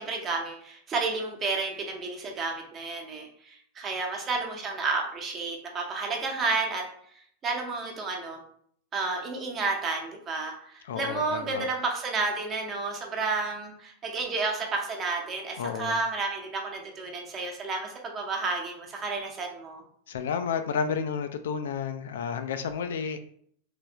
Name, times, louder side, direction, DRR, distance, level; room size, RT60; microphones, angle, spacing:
voice 1, 0.0-6.8 7.4-8.4 8.9-19.8, right 3 dB, 25° right, 1 dB, 0.9 m, -31 dB
voice 2, 10.8-11.7 15.6-16.0 20.1-23.2, left 6 dB, 60° left, 9 dB, 0.3 m, -31 dB
3.3 x 3.3 x 2.9 m, 0.63 s
figure-of-eight pair, 90°, 0 cm